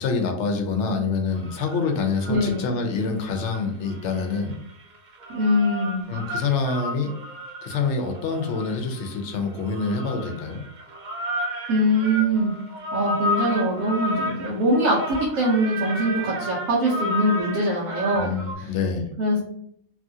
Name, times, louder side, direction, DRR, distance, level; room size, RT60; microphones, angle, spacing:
voice 1, 0.0-4.6 6.1-7.2 7.6-10.6 18.1-19.1, left 4 dB, 65° left, 4 dB, 0.8 m, -26 dB
sound 1, 1.3-2.8 3.2-18.5, left 1 dB, 65° right, 0.4 m, -32 dB
voice 2, 2.3-2.7 5.3-6.1 11.7-12.5 12.9-18.3 18.6-18.7 19.2-19.4, equal, 90° right, -5 dB, 1.2 m, -22 dB
2.9 x 2.4 x 2.6 m, 0.64 s
omnidirectional pair, 1.4 m